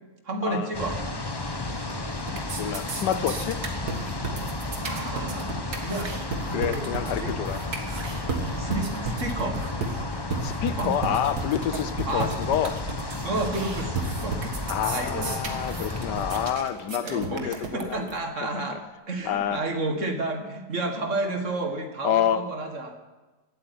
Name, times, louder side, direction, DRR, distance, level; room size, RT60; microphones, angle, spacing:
voice 1, 0.3-1.0 4.8-6.1 6.5-7.4 8.5-9.6 10.8-10.9 12.1-12.4 13.2-14.4 14.9-15.6 16.9-18.8 19.1-23.0, right 2 dB, 45° right, 5 dB, 2.1 m, -31 dB
sound 1, 0.7-16.5, left 2 dB, 20° left, 0.8 m, -33 dB
sound 2, 1.5-1.9 2.2-18.2, right 4 dB, 65° right, 2.2 m, -34 dB
voice 2, 2.5-3.6 6.5-7.6 10.4-12.8 14.7-18.1 18.4-18.8 19.3-19.6 22.0-22.4, left 9 dB, 85° left, 12 dB, 1.4 m, -28 dB
16.5 x 8.6 x 9.3 m, 1.2 s
omnidirectional pair, 1.8 m